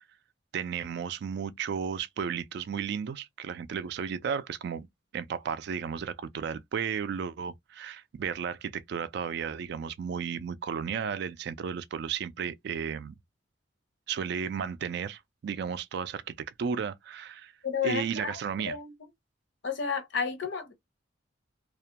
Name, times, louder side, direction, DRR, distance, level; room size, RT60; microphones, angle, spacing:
voice 1, 0.5-4.9 5.1-13.1 14.1-17.5 17.8-18.8, right 7 dB, 60° right, 0.3 m, -34 dB
voice 2, 17.6-18.9 19.6-20.7, left 6 dB, 65° left, 0.7 m, -32 dB
2.3 x 2.1 x 2.8 m
head